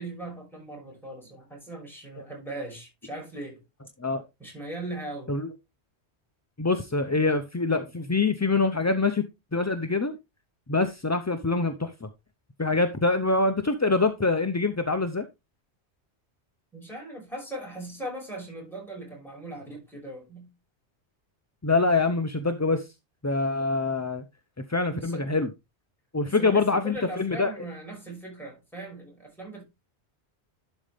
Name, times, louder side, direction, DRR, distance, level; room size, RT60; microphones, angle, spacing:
voice 1, 0.0-3.6 4.4-5.3 16.7-20.5 24.9-25.3 26.2-29.6, right 1 dB, ahead, 5.5 m, -39 dB
voice 2, 6.6-9.2 9.5-10.2 10.7-12.1 12.6-15.2 21.6-22.9 23.2-24.2 24.7-25.5 26.1-27.5, left 3 dB, 25° left, 0.4 m, -25 dB
11.5 x 5.2 x 3.3 m
omnidirectional pair, 1.1 m